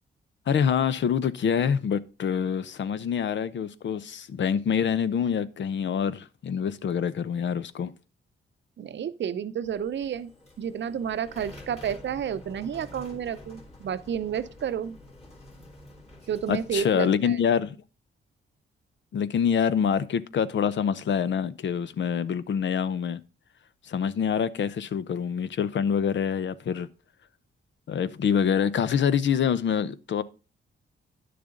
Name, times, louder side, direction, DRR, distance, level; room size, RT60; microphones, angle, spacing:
voice 1, 0.5-7.9 16.5-17.8 19.1-23.2 23.8-26.9 27.9-30.2, left 7 dB, 60° left, 0.7 m, -26 dB
voice 2, 8.8-10.3 10.6-15.0 16.3-17.4, right 8 dB, 60° right, 0.7 m, -31 dB
sound 1, 9.6-16.9, left 1 dB, 30° left, 3.2 m, -48 dB
10.5 x 6.8 x 3.8 m
cardioid pair, 95°, 21 cm